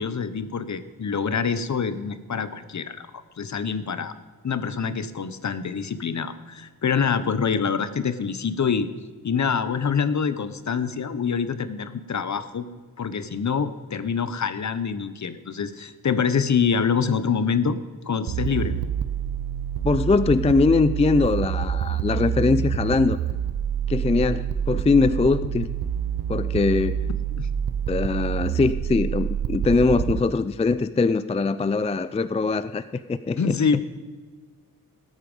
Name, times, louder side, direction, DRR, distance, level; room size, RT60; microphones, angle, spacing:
voice 1, 0.0-3.1 3.4-4.1 4.4-8.9 9.2-12.7 13.0-17.8 18.1-18.8 27.3-27.5 33.4-33.8, left 6 dB, 50° left, 13 dB, 0.9 m, -25 dB
sound 1, 18.3-30.2, right 9 dB, 75° right, 0.6 m, -27 dB
voice 2, 19.8-23.2 23.9-25.7 26.3-27.0 27.9-32.8 33.1-33.6, left 4 dB, 20° left, 13 dB, 0.4 m, -22 dB
18.5 x 8.4 x 5.3 m, 1.4 s
wide cardioid pair, 105°, 35 cm